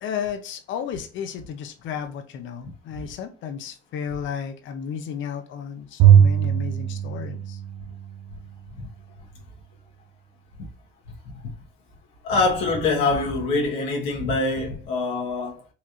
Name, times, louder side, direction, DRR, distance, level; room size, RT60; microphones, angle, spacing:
voice 1, 0.0-7.6, left 8 dB, 70° left, 0.6 m, -33 dB
Bowed string instrument, 6.0-8.4, right 9 dB, 85° right, 0.4 m, -19 dB
voice 2, 12.2-15.7, left 3 dB, 90° left, 1.3 m, -24 dB
4.2 x 2.9 x 2.5 m
supercardioid pair, 75°, 20 cm